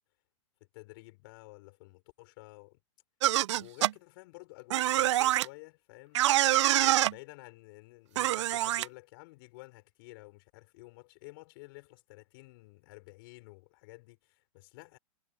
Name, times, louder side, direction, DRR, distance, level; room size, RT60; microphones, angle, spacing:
voice 1, 0.6-2.8 3.6-6.4 6.8-15.0, left 24 dB, 45° left, 5.7 m, -52 dB
sound 1, 3.2-3.9 4.7-5.5 6.2-7.1 8.2-8.9, right 14 dB, 60° right, 0.4 m, -25 dB
hypercardioid pair, 155°, 17 cm